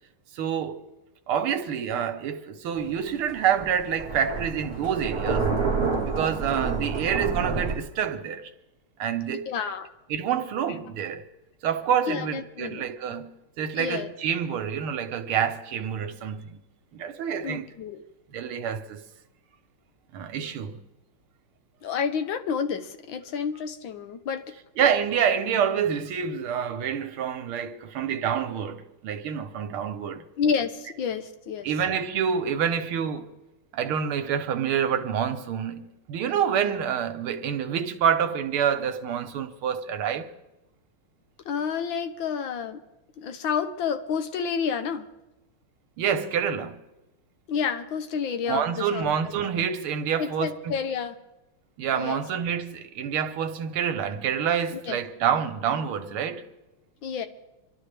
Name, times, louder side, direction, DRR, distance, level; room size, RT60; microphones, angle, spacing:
voice 1, 0.3-0.8 1.3-5.5 6.0-8.5 9.0-9.5 10.1-11.2 11.6-16.6 16.9-17.7 18.3-19.0 20.1-20.8 24.8-30.2 31.6-33.3 33.7-40.3 46.0-46.8 48.5-50.8 51.8-56.4, right 8 dB, 90° right, 1.8 m, -27 dB
Thunder, 2.8-7.8, right 4 dB, 35° right, 1.3 m, -28 dB
voice 2, 9.5-9.9 12.1-12.8 13.8-14.1 17.4-18.0 21.8-24.5 30.4-31.7 41.4-42.8 43.2-45.1 47.5-49.1 50.2-51.1 51.9-52.2 54.7-55.0 57.0-57.3, left 6 dB, 70° left, 1.6 m, -29 dB
25.5 x 12.0 x 3.4 m
omnidirectional pair, 2.3 m